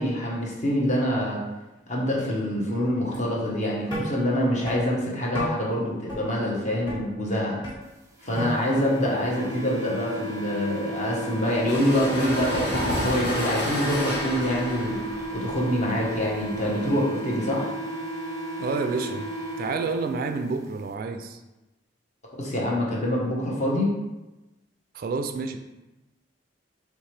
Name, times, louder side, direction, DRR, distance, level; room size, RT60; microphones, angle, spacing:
voice 1, 0.0-1.4 1.9-7.6 8.2-15.0 15.3-17.8 22.3-23.9, equal, 40° left, -3 dB, 1.0 m, -25 dB
sound 1, 3.1-3.3 3.9-4.0 4.7-4.8 5.3-5.5 6.1-6.2 6.9-7.0 7.6-7.8 8.4-8.5, equal, 25° left, 1.4 m, -32 dB
sound 2, 8.2-20.2, right 1 dB, 15° right, 0.7 m, -34 dB
sound 3, 11.4-16.9, left 1 dB, 60° left, 1.4 m, -31 dB
voice 2, 18.6-19.3 19.6-21.4 24.9-25.6, right 4 dB, 50° right, 7 dB, 0.3 m, -29 dB
4.7 x 3.2 x 3.3 m, 1.0 s
head